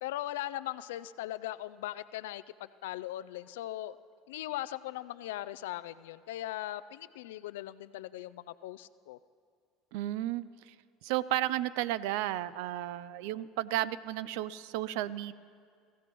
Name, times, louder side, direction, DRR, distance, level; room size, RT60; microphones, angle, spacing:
voice 1, 0.0-4.0 4.3-9.2, left 14 dB, 90° left, 16 dB, 0.3 m, -39 dB
voice 2, 9.9-10.7 11.0-15.3, right 14 dB, 80° right, 18 dB, 0.4 m, -33 dB
24.0 x 15.0 x 3.0 m, 2.2 s
supercardioid pair, 95°, 0 cm